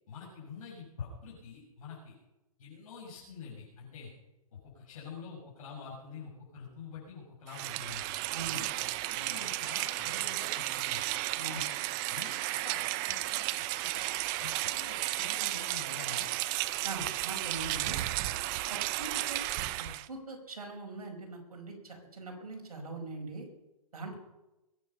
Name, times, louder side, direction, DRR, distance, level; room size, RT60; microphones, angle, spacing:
voice 1, 0.1-2.1 2.6-4.1 4.5-8.1 8.5-11.0 11.3-11.7 12.1-12.8 13.1-14.0 14.4-16.3, left 5 dB, 65° left, -4 dB, 6.2 m, -47 dB
Rain, 7.5-20.1, right 17 dB, 30° right, 0.7 m, -33 dB
voice 2, 16.8-18.0 18.7-19.4 19.7-23.5 23.9-24.2, right 3 dB, 75° right, 2 dB, 5.1 m, -42 dB
22.0 x 9.2 x 5.7 m, 0.97 s
hypercardioid pair, 135°, 19 cm